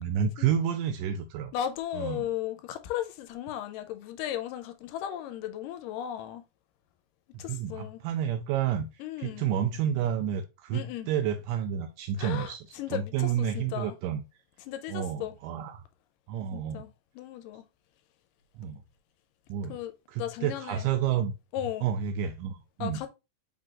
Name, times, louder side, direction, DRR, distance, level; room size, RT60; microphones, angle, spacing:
voice 1, 0.0-1.5 1.9-2.3 7.5-8.9 9.2-14.2 14.9-15.8 16.3-16.8 18.6-18.8 19.5-19.8 20.1-21.3 21.8-23.1, right 9 dB, 85° right, 2.1 m, -30 dB
voice 2, 1.5-6.4 7.4-8.0 9.0-9.5 10.7-11.1 12.2-14.0 14.6-15.4 16.5-17.7 19.7-19.9 20.2-20.9 21.5-21.9 22.8-23.1, left 11 dB, 90° left, 2.2 m, -36 dB
5.4 x 3.8 x 2.4 m
omnidirectional pair, 3.8 m